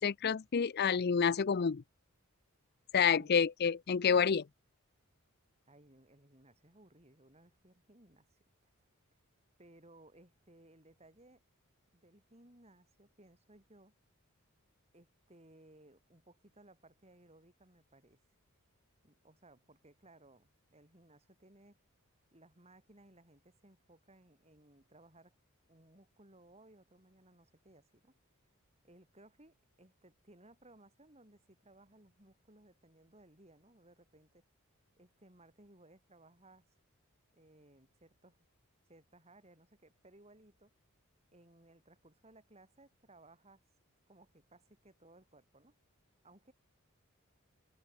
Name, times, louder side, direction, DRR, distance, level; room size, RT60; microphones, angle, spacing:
voice 1, 0.0-1.8 2.9-4.4, left 6 dB, 50° left, 0.5 m, -28 dB
voice 2, 3.2-3.5 5.7-8.4 8.8-8.9 9.6-11.4 11.9-13.9 14.9-18.2 19.0-21.8 22.3-25.4 25.7-28.1 28.8-34.4 35.0-36.7 37.3-38.5 38.9-40.7 41.3-43.6 44.1-45.8 46.2-46.5, right 1 dB, 30° right, 6.2 m, -62 dB
head